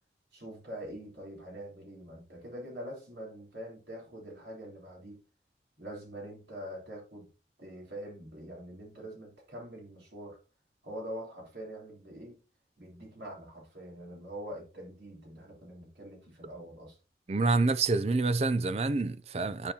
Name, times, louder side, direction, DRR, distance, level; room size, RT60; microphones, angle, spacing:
voice 1, 0.3-5.2 5.8-7.3 7.6-10.4 10.8-12.4 12.8-17.0, equal, 85° right, 3.7 m, -44 dB
voice 2, 17.3-19.7, right 3 dB, 35° right, 0.4 m, -27 dB
10.0 x 5.2 x 2.9 m
head